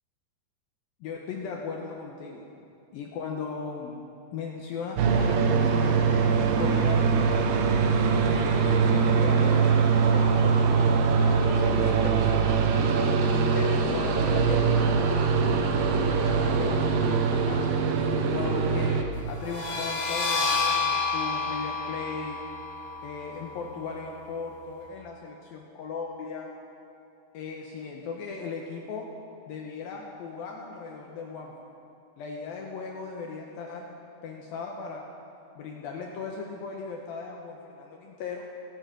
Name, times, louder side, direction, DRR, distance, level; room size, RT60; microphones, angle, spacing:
voice 1, 1.0-2.4 2.9-4.0 4.3-7.5 8.3-10.9 11.2-15.4 16.1-17.8 18.1-22.4 23.0-26.5 27.3-29.1 29.5-31.5 32.2-33.9 34.2-35.0 35.6-38.5, left 5 dB, 75° left, 0 dB, 2.3 m, -37 dB
sound 1, 5.0-19.0, right 5 dB, 75° right, 2.1 m, -23 dB
sound 2, 19.4-24.8, left 4 dB, 50° left, 2.5 m, -30 dB
24.0 x 9.2 x 5.1 m, 2.6 s
omnidirectional pair, 5.1 m